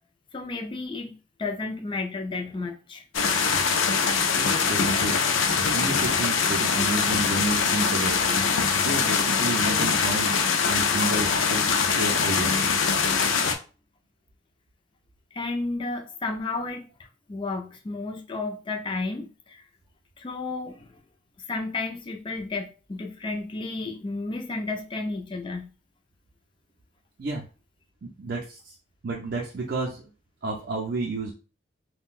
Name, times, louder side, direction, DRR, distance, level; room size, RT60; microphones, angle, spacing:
voice 1, 0.3-1.1 1.4-3.0 15.3-16.8 17.3-19.6 20.2-21.0 21.5-25.7, left 3 dB, 25° left, 4 dB, 0.4 m, -32 dB
sound 1, 3.1-13.5, left 5 dB, 80° left, 0.4 m, -23 dB
voice 2, 4.3-5.2 5.7-8.2 8.8-10.3 10.7-12.7 27.2-27.5 28.0-28.7 29.0-30.0 30.4-31.3, right 2 dB, 55° right, -1 dB, 0.4 m, -31 dB
3.8 x 2.1 x 2.4 m, 0.35 s
head